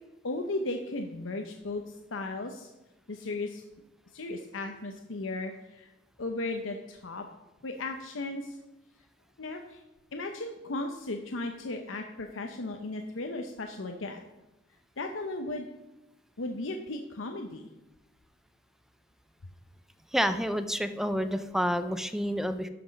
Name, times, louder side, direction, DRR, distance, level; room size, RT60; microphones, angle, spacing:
voice 1, 0.2-1.8 2.1-2.7 3.1-3.6 4.1-5.9 6.2-7.3 7.6-8.6 9.4-9.8 10.1-14.2 15.0-15.7 16.4-17.7, left 2 dB, 80° left, 4 dB, 0.8 m, -35 dB
voice 2, 20.1-22.7, equal, ahead, 10 dB, 0.5 m, -29 dB
12.0 x 6.1 x 5.2 m, 1.0 s
head